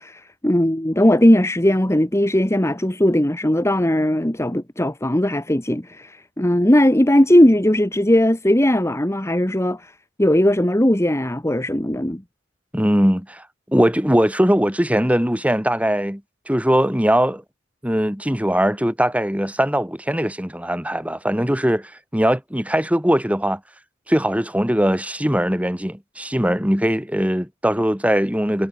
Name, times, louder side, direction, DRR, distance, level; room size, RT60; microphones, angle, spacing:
voice 1, 0.0-12.2, left 1 dB, 15° left, 1.7 m, -18 dB
voice 2, 12.7-13.4 13.7-16.2 16.5-17.4 17.8-23.6 24.1-28.7, equal, 5° right, 3.9 m, -20 dB
head